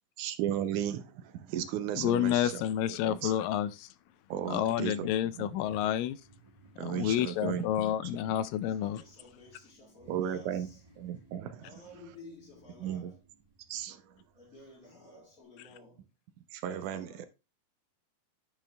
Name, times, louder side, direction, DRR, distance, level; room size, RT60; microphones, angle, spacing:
voice 1, 0.2-2.6 2.9-3.3 4.3-5.1 5.4-5.6 6.8-8.1 10.1-10.7 11.0-11.7 12.8-13.1 13.7-14.1 16.5-17.3, right 10 dB, 75° right, 2.0 m, -35 dB
voice 2, 2.0-3.9 4.5-6.2 6.8-9.0 15.6-15.7, left 11 dB, 80° left, 2.2 m, -30 dB
Car / Idling / Accelerating revving vroom, 3.7-15.4, right 2 dB, 15° right, 1.6 m, -62 dB
voice 3, 8.6-10.8 11.6-13.2 14.3-16.0 16.8-17.3, left 2 dB, 35° left, 1.4 m, -53 dB
10.5 x 4.3 x 3.3 m
omnidirectional pair, 4.0 m